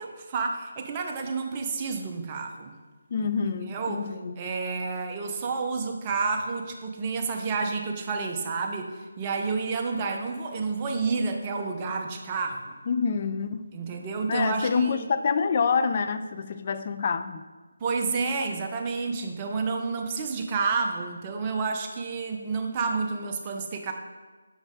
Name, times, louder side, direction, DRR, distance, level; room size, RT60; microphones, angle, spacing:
voice 1, 0.0-2.8 3.6-4.0 4.4-12.7 13.7-15.1 17.8-23.9, right 4 dB, 25° right, 3 dB, 0.7 m, -30 dB
voice 2, 3.1-4.4 12.9-13.7 14.3-17.4, left 5 dB, 40° left, 10 dB, 0.4 m, -27 dB
6.2 x 5.2 x 3.7 m, 1.3 s
figure-of-eight pair, 155°, 0 cm